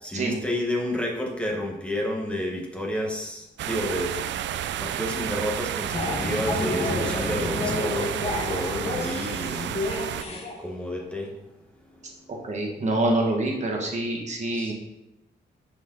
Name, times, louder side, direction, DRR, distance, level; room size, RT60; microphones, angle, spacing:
voice 1, 0.0-4.2 4.8-9.9 10.6-11.3 11.9-12.2 14.5-14.7, left 1 dB, 5° left, 0 dB, 1.1 m, -30 dB
sound 1, 3.6-10.2, right 11 dB, 90° right, 0.4 m, -31 dB
sound 2, 5.9-10.6, left 2 dB, 35° left, 1.0 m, -30 dB
voice 2, 12.3-14.7, right 2 dB, 40° right, 0 dB, 1.5 m, -26 dB
9.9 x 4.5 x 3.8 m, 0.91 s
wide cardioid pair, 165°, 18 cm